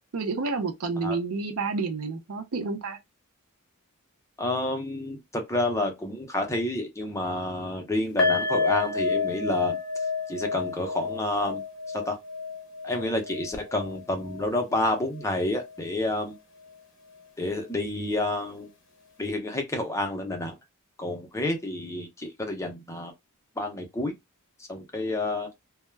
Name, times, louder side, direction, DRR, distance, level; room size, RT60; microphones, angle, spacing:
voice 1, 0.1-3.0, right 4 dB, 80° right, 0.6 m, -29 dB
voice 2, 4.4-9.8 10.3-12.2 12.8-16.4 17.4-18.7 19.2-20.6 21.0-23.1 23.6-24.1 24.7-25.5, left 1 dB, 15° left, 0.6 m, -29 dB
sound 1, 8.2-15.4 15.7-15.8 16.2-16.3, left 4 dB, 60° left, 0.8 m, -30 dB
2.3 x 2.1 x 3.1 m
head